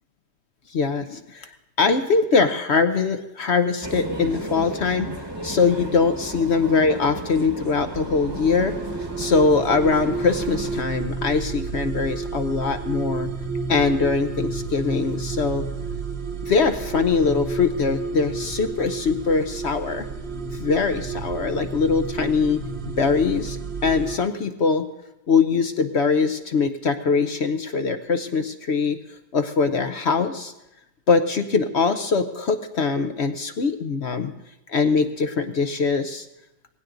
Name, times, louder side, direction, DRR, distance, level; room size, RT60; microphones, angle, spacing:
voice 1, 0.7-1.5 1.8-8.7 9.2-13.3 13.7-15.6 16.4-20.1 20.6-24.9 25.3-29.0 29.3-30.5 31.1-34.3 34.7-36.3, left 4 dB, 55° left, 8 dB, 0.8 m, -22 dB
sound 1, 3.8-10.8, right 2 dB, 15° right, 1.1 m, -34 dB
sound 2, 7.6-24.2, right 4 dB, 45° right, 1.1 m, -31 dB
18.5 x 16.5 x 3.9 m, 0.92 s
omnidirectional pair, 1.8 m